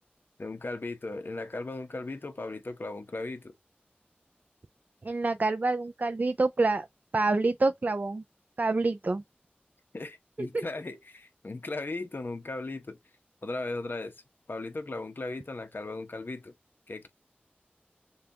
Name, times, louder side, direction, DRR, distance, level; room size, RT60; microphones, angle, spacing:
voice 1, 0.4-3.5 9.9-13.0 13.4-14.1 14.5-16.5 16.9-17.1, left 2 dB, 65° left, 0.8 m, -37 dB
voice 2, 5.0-6.9 7.1-8.2 8.6-9.2 10.5-10.6, right 3 dB, 50° right, 0.3 m, -27 dB
6.8 x 2.3 x 2.7 m
wide cardioid pair, 55°, 4 cm